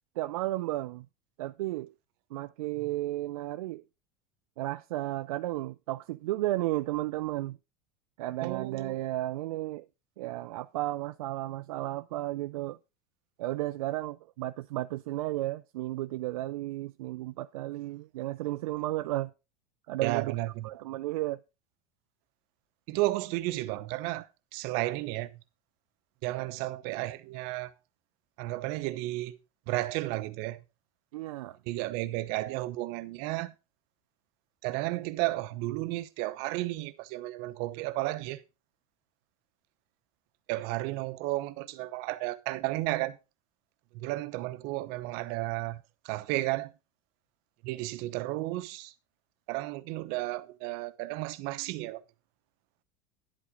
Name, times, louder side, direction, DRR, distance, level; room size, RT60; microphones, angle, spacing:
voice 1, 0.2-1.1 1.4-1.9 2.3-3.8 4.6-7.6 8.2-9.9 10.2-12.8 13.4-19.3 19.9-20.4 20.6-21.4 31.1-31.6, right 16 dB, 80° right, 0.5 m, -33 dB
voice 2, 8.4-8.9 20.0-20.7 22.9-25.4 26.2-27.7 28.4-29.4 29.7-30.6 31.7-33.5 34.6-38.4 40.5-43.2 43.9-46.7 47.6-48.9 49.5-52.0, right 18 dB, 60° right, 0.9 m, -33 dB
11.0 x 8.3 x 3.7 m
hypercardioid pair, 95°, 18 cm